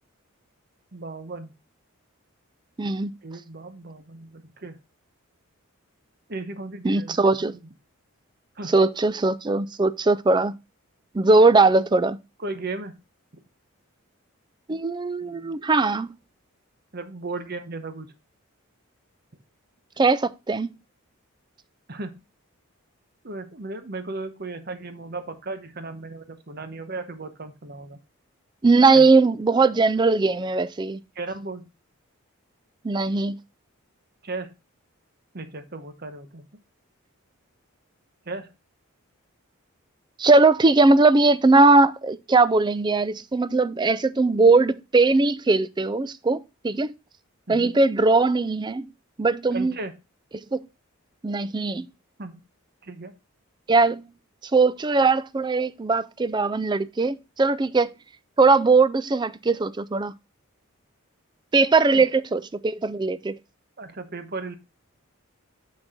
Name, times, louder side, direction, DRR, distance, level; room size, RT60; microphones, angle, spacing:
voice 1, 0.9-1.5 3.2-4.8 6.3-7.2 8.6-8.7 11.7-11.8 12.4-13.0 13.3-13.4 16.9-18.1 21.9-22.1 23.2-28.0 28.9-29.1 31.1-31.7 34.2-34.5 35.3-36.4 38.3-38.5 47.5-47.7 49.5-49.9 52.2-52.4 52.8-53.1 61.9-62.1 63.8-64.6, right 3 dB, 45° right, 1.0 m, -35 dB
voice 2, 2.8-3.1 6.8-7.5 8.7-10.5 11.1-12.2 14.7-16.1 20.0-20.7 28.6-31.0 32.8-33.4 40.2-46.9 47.5-48.9 49.2-49.7 50.5-50.6 51.2-51.9 53.7-54.1 54.5-57.9 58.4-60.1 61.5-63.4, right 3 dB, 20° right, 0.3 m, -20 dB
6.2 x 6.2 x 3.6 m
head